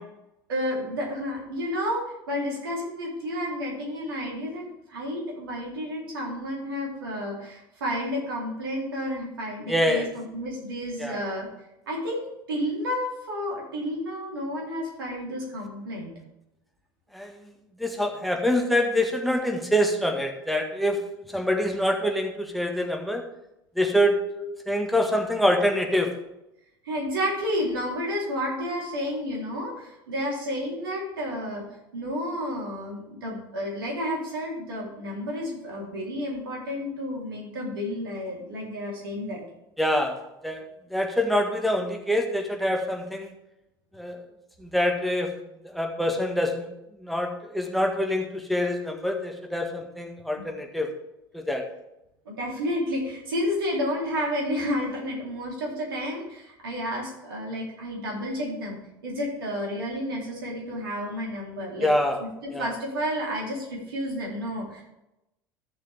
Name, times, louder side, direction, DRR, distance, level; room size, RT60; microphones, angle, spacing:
voice 1, 0.5-11.5 11.9-16.1 24.3-24.4 26.8-31.6 31.9-39.4 50.4-50.5 52.3-61.9 62.2-64.8, equal, 70° right, -3 dB, 3.7 m, -31 dB
voice 2, 9.7-10.1 11.0-11.2 17.1-17.5 17.8-21.0 21.3-23.2 23.8-24.2 24.7-26.1 39.8-40.6 40.9-43.3 43.9-44.2 44.6-45.3 45.6-46.7 47.0-50.9 51.3-51.6 61.8-62.2 62.5-62.7, left 1 dB, ahead, 2 dB, 1.7 m, -25 dB
14.0 x 7.3 x 3.6 m, 0.89 s
figure-of-eight pair, 70°, 12 cm